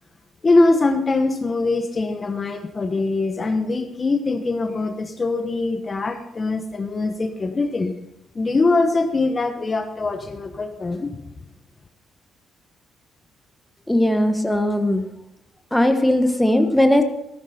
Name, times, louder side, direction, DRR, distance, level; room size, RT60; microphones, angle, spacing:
voice 1, 0.4-7.9 8.3-11.2, left 3 dB, 30° left, 6 dB, 1.2 m, -22 dB
voice 2, 13.9-15.0 15.7-17.0, left 1 dB, 5° left, 6 dB, 1.4 m, -18 dB
14.5 x 13.0 x 4.4 m, 0.84 s
cardioid pair, 90°, 0 cm